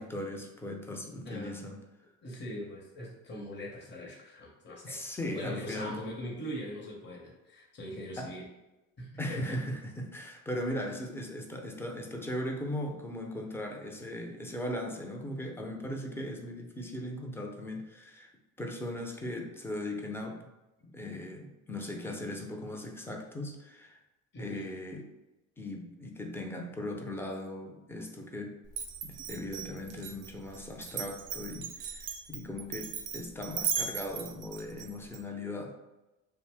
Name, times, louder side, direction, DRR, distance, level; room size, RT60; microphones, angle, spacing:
voice 1, 0.0-1.8 4.8-6.0 8.2-8.3 9.2-18.3 18.6-20.5 20.8-24.0 24.4-25.0 25.6-28.6 29.0-35.7, left 1 dB, 5° left, 2 dB, 0.5 m, -38 dB
voice 2, 1.2-1.6 2.2-5.0 5.3-8.5 9.0-9.6 24.3-24.7, equal, 30° left, -3 dB, 0.8 m, -41 dB
Glass, 28.7-35.2, right 7 dB, 55° right, 0.7 m, -37 dB
2.6 x 2.1 x 3.4 m, 1.0 s
hypercardioid pair, 65°, 37 cm